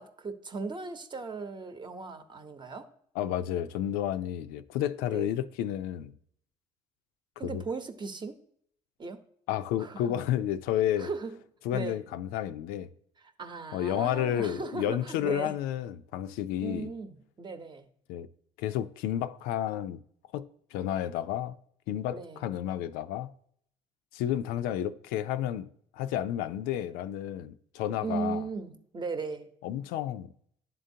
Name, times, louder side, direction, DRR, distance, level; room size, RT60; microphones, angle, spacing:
voice 1, 0.0-2.9 5.1-5.3 7.4-8.3 9.0-9.2 9.8-10.0 11.0-11.3 11.7-12.0 13.4-15.6 16.6-17.9 22.1-22.4 28.0-29.5, right 4 dB, 30° right, 0.9 m, -37 dB
voice 2, 3.2-6.1 7.4-7.6 9.5-11.1 11.6-12.9 13.7-16.9 18.1-18.3 18.6-20.0 20.3-20.5 20.7-21.6 21.9-23.3 24.1-25.7 25.9-28.5 29.6-30.3, left 11 dB, 85° left, 0.4 m, -31 dB
11.0 x 3.8 x 2.7 m
supercardioid pair, 80°, 15 cm